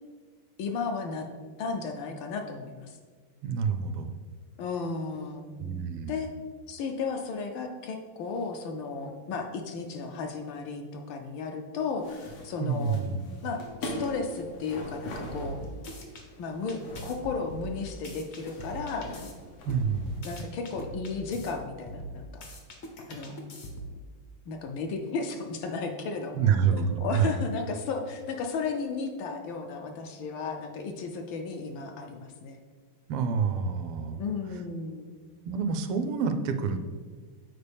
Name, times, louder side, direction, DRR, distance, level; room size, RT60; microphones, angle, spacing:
voice 1, 0.6-1.2 1.6-3.0 4.6-5.5 6.1-6.3 6.7-13.0 13.4-15.6 16.4-19.2 20.2-22.5 23.1-23.3 24.5-26.6 27.0-32.6 34.2-35.1, left 4 dB, 75° left, 4 dB, 1.2 m, -34 dB
voice 2, 3.4-4.2 5.6-6.3 12.6-13.4 19.6-20.3 26.3-27.5 33.1-34.2 35.5-36.8, right 6 dB, 85° right, 9 dB, 1.5 m, -28 dB
sound 1, 12.0-20.2, left 1 dB, 90° left, 2.1 m, -42 dB
sound 2, 15.3-16.2 16.7-19.3 19.7-21.5 21.9-24.0, equal, 55° left, 0.7 m, -41 dB
8.2 x 4.4 x 3.4 m, 1.5 s
omnidirectional pair, 2.4 m